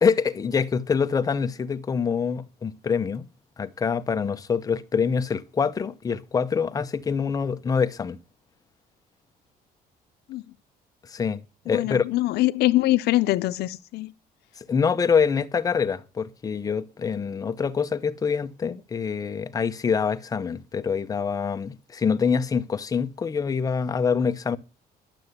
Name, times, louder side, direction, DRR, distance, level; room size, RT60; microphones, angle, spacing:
voice 1, 0.0-3.3 3.6-8.2 11.0-11.4 11.7-12.1 14.6-24.6, left 6 dB, 20° left, 0.6 m, -25 dB
voice 2, 11.7-14.1, left 17 dB, 80° left, 0.6 m, -23 dB
11.5 x 6.8 x 7.9 m
cardioid pair, 165°, 17 cm